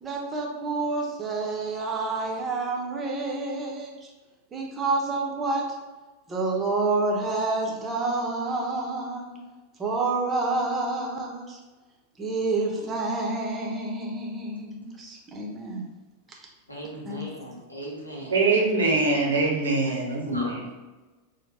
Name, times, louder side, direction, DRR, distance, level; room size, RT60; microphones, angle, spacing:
voice 1, 0.0-4.1 4.5-5.7 6.3-9.4 9.8-11.6 12.2-15.9 16.3-16.4 17.1-17.2, right 3 dB, 20° right, -1 dB, 0.7 m, -28 dB
voice 2, 16.7-18.4 19.8-19.9 20.3-20.5, right 1 dB, 85° left, -3 dB, 0.8 m, -38 dB
voice 3, 18.3-20.6, right 3 dB, 70° right, -1 dB, 0.7 m, -23 dB
4.0 x 2.1 x 3.3 m, 1.2 s
figure-of-eight pair, 90°, 0 cm